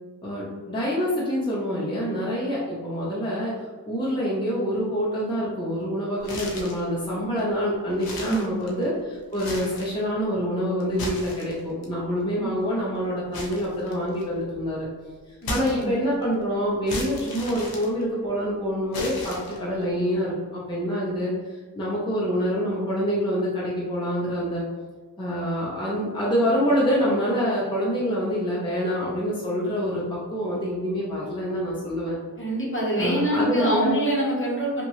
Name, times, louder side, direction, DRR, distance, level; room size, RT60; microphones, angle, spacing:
voice 1, 0.2-3.5 3.9-14.9 15.3-24.6 25.2-32.2 33.0-34.0, equal, 15° left, -7 dB, 0.8 m, -26 dB
sound 1, 6.2-6.9 7.4-7.5 7.9-8.9 9.3-10.0 10.8-11.8 13.3-14.4 15.4-16.2 16.9-18.4 18.9-19.8, left 2 dB, 75° left, 0.7 m, -35 dB
voice 2, 8.2-8.6 12.4-12.5 15.4-16.0 32.4-34.9, right 1 dB, 35° left, -5 dB, 1.1 m, -25 dB
2.9 x 2.5 x 3.0 m, 1.4 s
cardioid pair, 60°, 36 cm